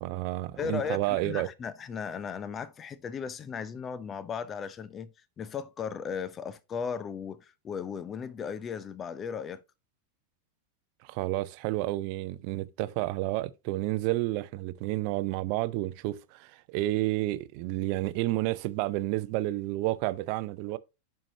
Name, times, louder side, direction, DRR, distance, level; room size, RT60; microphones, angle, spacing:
voice 1, 0.0-1.5 11.0-20.8, right 17 dB, 45° right, 0.6 m, -30 dB
voice 2, 0.6-5.1 5.4-9.6, left 6 dB, 25° left, 0.8 m, -36 dB
8.9 x 5.8 x 2.8 m
figure-of-eight pair, 90°, 0 cm